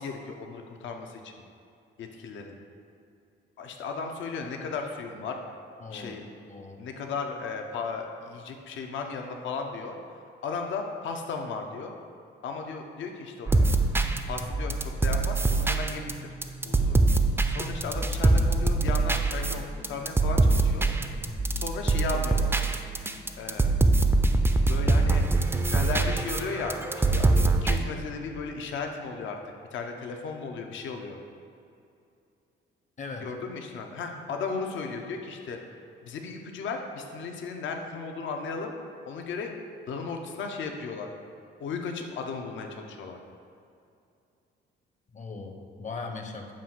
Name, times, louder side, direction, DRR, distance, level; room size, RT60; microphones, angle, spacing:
voice 1, 0.0-1.3 2.0-2.5 3.6-5.4 5.9-6.3 6.8-10.0 10.4-11.9 12.4-13.6 14.3-16.3 16.6-16.9 17.5-20.9 21.5-22.5 23.4-23.7 24.7-25.2 25.7-29.4 29.7-31.2 33.2-35.6 36.0-38.7 39.1-39.6 39.9-41.1 41.6-43.2, left 4 dB, 75° left, 3 dB, 0.7 m, -35 dB
voice 2, 5.8-6.2 6.5-6.8 33.0-33.3 45.1-46.5, left 4 dB, 40° left, 4 dB, 0.7 m, -39 dB
sound 1, 13.5-27.8, right 3 dB, 10° right, 0.4 m, -24 dB
7.3 x 2.5 x 5.6 m, 2.6 s
cardioid pair, 90°, 20 cm